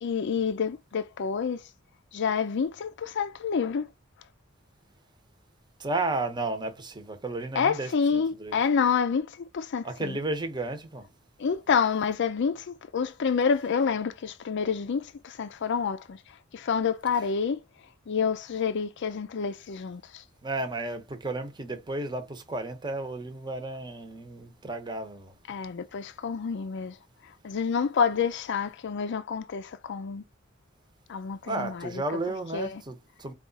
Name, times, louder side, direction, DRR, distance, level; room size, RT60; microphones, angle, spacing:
voice 1, 0.0-1.6 2.1-3.8 7.6-10.2 11.4-16.2 16.5-17.6 18.1-20.2 25.5-27.0 27.4-30.2 31.1-32.0 32.5-32.8, left 6 dB, 60° left, 0.4 m, -28 dB
voice 2, 5.8-8.6 9.8-11.0 20.4-25.3 31.4-33.3, right 2 dB, 20° right, 0.8 m, -33 dB
4.7 x 2.4 x 3.8 m
head